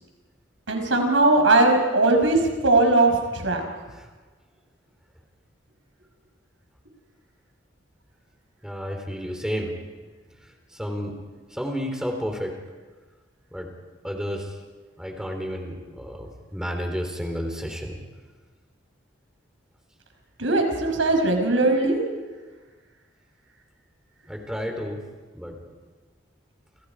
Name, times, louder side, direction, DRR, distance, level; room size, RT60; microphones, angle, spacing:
voice 1, 0.7-3.6 20.4-22.0, right 2 dB, 85° right, 4 dB, 5.4 m, -19 dB
voice 2, 8.6-9.8 10.4-11.2 11.5-12.5 13.5-13.7 14.0-14.6 15.0-18.0 24.3-25.0 25.3-25.6, equal, 5° right, 3 dB, 3.8 m, -31 dB
30.0 x 29.0 x 4.9 m, 1.4 s
head